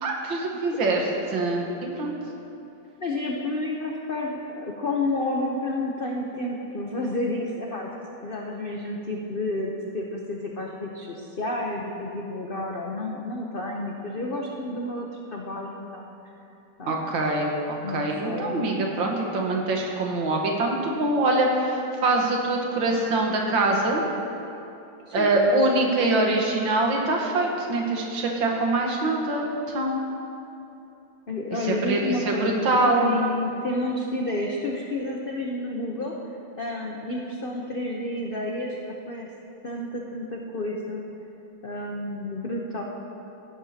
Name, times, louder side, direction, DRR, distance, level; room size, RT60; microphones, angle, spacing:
voice 1, 0.0-1.7 2.0-2.2 16.9-24.0 25.1-30.0 31.6-33.1, right 2 dB, 80° right, 0 dB, 2.0 m, -24 dB
voice 2, 3.0-7.9 8.2-16.2 16.8-17.0 17.8-19.0 25.1-25.3 31.3-36.1 36.6-38.8 39.1-39.3 39.6-41.0 41.6-42.8, left 2 dB, 65° left, -1 dB, 0.5 m, -30 dB
16.0 x 10.5 x 2.8 m, 2.9 s
omnidirectional pair, 2.1 m